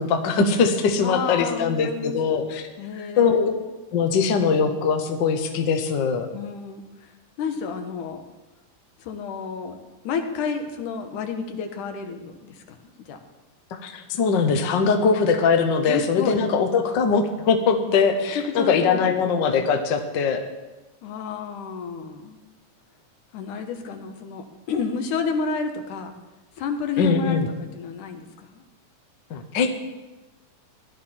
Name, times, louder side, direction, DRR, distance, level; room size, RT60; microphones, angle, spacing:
voice 1, 0.0-2.7 3.0-3.5 3.9-6.3 13.7-20.4 27.0-27.5 29.3-29.7, left 5 dB, 65° left, 5 dB, 1.1 m, -21 dB
voice 2, 1.0-2.4 2.8-3.6 6.3-7.1 7.4-8.2 9.0-9.8 10.0-12.8 13.1-13.2 15.9-16.4 18.3-19.2 21.0-22.4 23.3-26.1 26.6-27.4 27.7-28.6, left 5 dB, 80° left, 5 dB, 2.6 m, -30 dB
15.5 x 11.5 x 4.4 m, 1.1 s
omnidirectional pair, 3.6 m